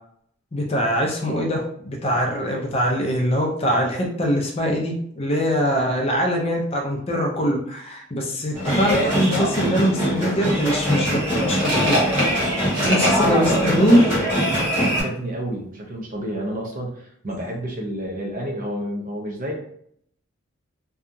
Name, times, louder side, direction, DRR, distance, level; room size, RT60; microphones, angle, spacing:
voice 1, 0.5-12.0 12.9-14.0, equal, 30° left, 0 dB, 0.4 m, -22 dB
sound 1, 8.5-15.0, equal, 15° right, 1.4 m, -22 dB
sound 2, 10.2-10.3 10.9-14.1, equal, 65° right, 1.1 m, -25 dB
voice 2, 12.7-19.6, equal, 40° right, 0 dB, 0.6 m, -30 dB
2.7 x 2.3 x 2.5 m, 0.67 s
head